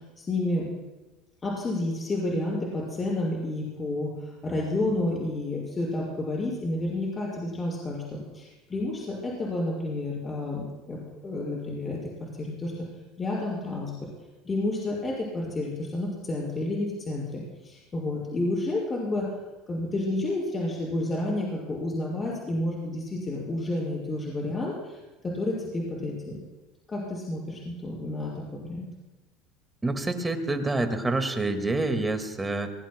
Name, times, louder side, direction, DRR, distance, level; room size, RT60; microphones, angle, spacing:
voice 1, 0.2-0.7 1.4-11.0 11.2-12.9 13.2-13.9 14.4-19.3 19.7-25.0 25.2-26.4 26.9-28.9, left 2 dB, 25° left, -5 dB, 5.6 m, -30 dB
voice 2, 29.8-32.7, right 2 dB, 15° right, 7 dB, 1.9 m, -27 dB
24.0 x 19.5 x 2.2 m, 1.1 s
supercardioid pair, 95°, 0 cm